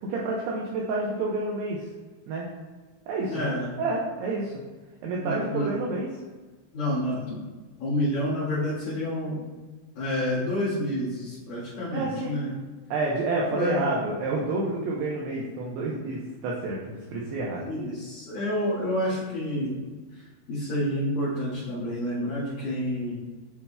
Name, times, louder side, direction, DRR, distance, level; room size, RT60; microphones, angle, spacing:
voice 1, 0.0-1.8 2.3-2.5 3.1-4.5 5.0-6.1 11.9-12.4 12.9-17.6, right 2 dB, 85° right, -3 dB, 2.3 m, -29 dB
voice 2, 3.3-3.7 5.2-5.7 6.7-7.4 7.8-9.4 9.9-12.6 13.5-13.9 17.5-19.8 20.1-20.2 20.5-23.2, left 1 dB, 55° left, -11 dB, 3.1 m, -29 dB
8.5 x 7.1 x 2.2 m, 1.3 s
omnidirectional pair, 5.8 m